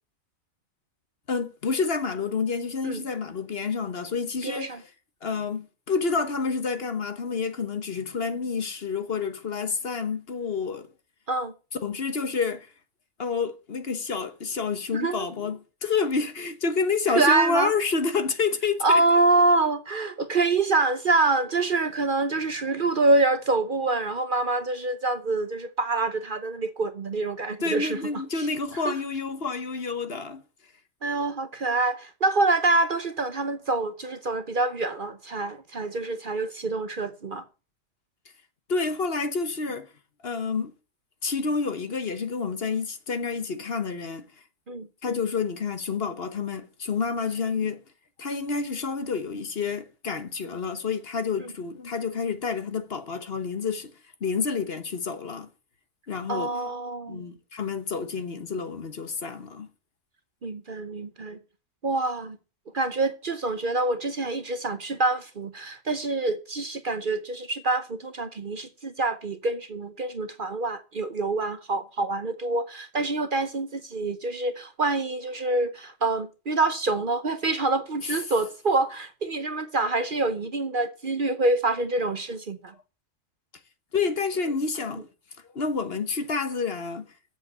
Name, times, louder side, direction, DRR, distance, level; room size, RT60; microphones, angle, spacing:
voice 1, 1.3-4.8 5.2-10.9 11.8-12.7 13.2-19.0 27.6-30.4 38.7-39.9 40.2-40.7 41.2-44.3 45.0-47.8 48.2-53.9 54.2-55.5 56.1-56.7 57.1-59.7 78.0-78.2 83.9-85.1 85.4-87.1, left 5 dB, 50° left, 1.3 m, -29 dB
voice 2, 4.4-4.8 11.3-11.5 14.9-15.3 17.1-17.7 18.8-28.0 28.4-28.5 28.8-28.9 31.0-37.4 44.7-44.9 51.4-51.5 56.3-57.3 60.4-61.4 61.8-62.4 62.7-82.7, right 3 dB, 45° right, 1.0 m, -26 dB
8.0 x 7.7 x 8.0 m
omnidirectional pair, 1.4 m